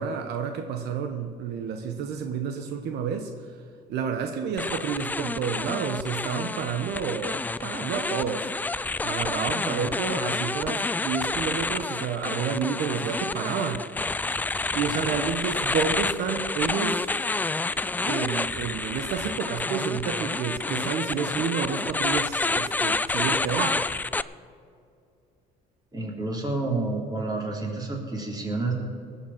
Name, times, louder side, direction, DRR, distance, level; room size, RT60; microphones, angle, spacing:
voice 1, 0.0-3.5 3.9-8.5 9.0-13.9 14.7-17.1 18.1-24.0, right 6 dB, 75° right, 5 dB, 1.1 m, -30 dB
sound 1, 4.6-24.2, left 3 dB, 10° left, 0.3 m, -29 dB
voice 2, 25.9-28.7, right 3 dB, 25° right, -1 dB, 3.6 m, -29 dB
19.5 x 7.2 x 7.5 m, 2.4 s
cardioid pair, 110°, 17 cm